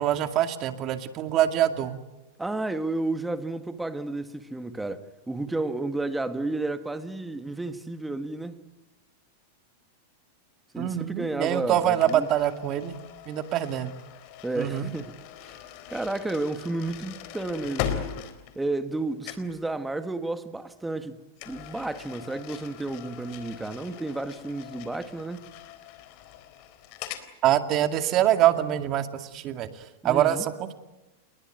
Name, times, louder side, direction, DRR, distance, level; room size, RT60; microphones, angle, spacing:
voice 1, 0.0-2.0 10.8-12.9 13.3-13.9 14.6-14.9 27.4-30.7, right 11 dB, 40° right, 2.4 m, -25 dB
voice 2, 2.4-8.6 10.7-12.3 14.4-15.1 15.4-15.6 15.9-18.1 18.6-21.2 21.5-25.5 30.0-30.4, right 2 dB, 5° right, 1.8 m, -32 dB
sound 1, 12.0-19.0 19.2-19.6 21.4-27.3, left 9 dB, 50° left, 3.7 m, -40 dB
29.0 x 21.5 x 9.2 m
supercardioid pair, 135°, 0 cm